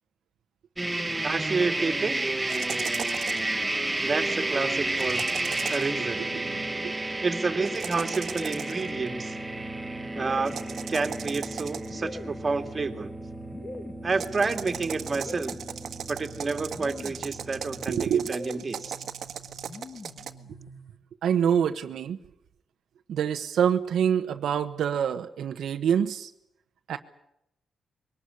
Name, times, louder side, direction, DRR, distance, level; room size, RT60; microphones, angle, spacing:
sound 1, 0.8-18.3, right 2 dB, 15° right, 1.3 m, -32 dB
voice 1, 1.2-2.2 4.0-5.2 5.7-6.3 7.2-9.3 10.1-10.6 10.9-13.1 14.0-15.6 16.1-18.9, right 4 dB, 30° right, 6 dB, 2.3 m, -29 dB
sound 2, 2.5-3.5 5.0-6.0 7.6-8.9 10.5-12.0 14.1-20.3, right 8 dB, 70° right, 1.5 m, -38 dB
sound 3, 4.9-7.1 8.0-21.0, equal, 45° left, 2.7 m, -45 dB
voice 2, 17.9-18.3 21.2-22.2 23.1-26.3 26.9-27.0, right 8 dB, 85° right, 6 dB, 1.1 m, -26 dB
22.5 x 19.0 x 9.8 m, 0.80 s
cardioid pair, 120°, 0 cm